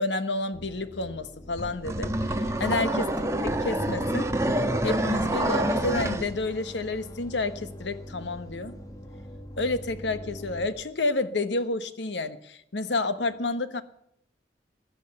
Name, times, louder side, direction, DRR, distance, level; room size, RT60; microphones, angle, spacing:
voice 1, 0.0-2.1 2.6-3.1 3.6-4.3 4.8-8.7 9.6-13.8, left 2 dB, 80° left, 12 dB, 1.2 m, -29 dB
sound 1, 0.5-10.7, equal, 20° left, 1.3 m, -44 dB
sound 2, 1.6-6.3, right 1 dB, 15° right, 1.3 m, -27 dB
16.5 x 11.0 x 6.9 m, 0.73 s
head